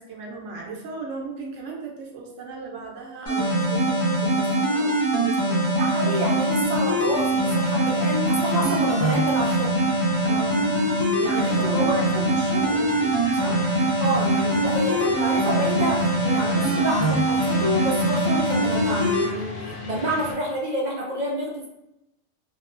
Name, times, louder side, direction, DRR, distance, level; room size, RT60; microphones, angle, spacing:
voice 1, 0.0-5.7 10.2-10.7 11.3-13.7 17.5-17.6, right 4 dB, 80° right, -1 dB, 1.0 m, -36 dB
sound 1, 3.3-19.3, right 1 dB, 25° left, 0.7 m, -22 dB
voice 2, 5.8-9.7 11.2-12.0 14.0-21.7, equal, 55° right, -2 dB, 0.5 m, -28 dB
sound 2, 6.9-20.3, left 2 dB, 85° left, 1.1 m, -38 dB
2.8 x 2.0 x 2.4 m, 0.89 s
omnidirectional pair, 1.2 m